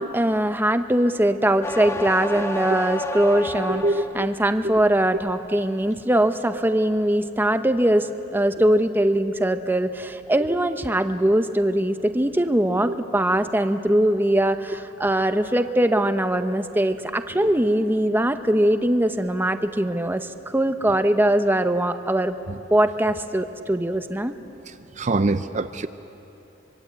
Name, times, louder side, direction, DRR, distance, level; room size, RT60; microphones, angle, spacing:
voice 1, 0.0-3.8 4.1-22.3 22.7-24.3, right 1 dB, 10° right, 8 dB, 0.8 m, -21 dB
sound 1, 1.6-4.3 4.8-5.3, left 2 dB, 15° left, 0.8 m, -31 dB
voice 2, 3.7-4.3 4.6-4.7 22.5-22.6 24.7-25.9, right 2 dB, 40° right, 10 dB, 0.6 m, -24 dB
25.5 x 23.5 x 8.3 m, 3.0 s
head